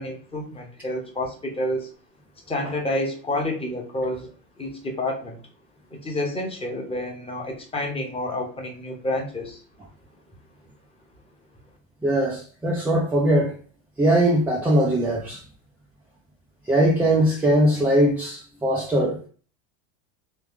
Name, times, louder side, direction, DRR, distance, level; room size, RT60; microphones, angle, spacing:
voice 1, 0.0-1.9 2.5-4.3 4.6-5.4 5.9-9.6, left 1 dB, 15° left, 1.0 m, -29 dB
voice 2, 12.0-13.6 14.0-15.4 16.7-19.3, right 1 dB, 5° right, 0.4 m, -21 dB
3.3 x 3.2 x 3.6 m
supercardioid pair, 135°, 40 cm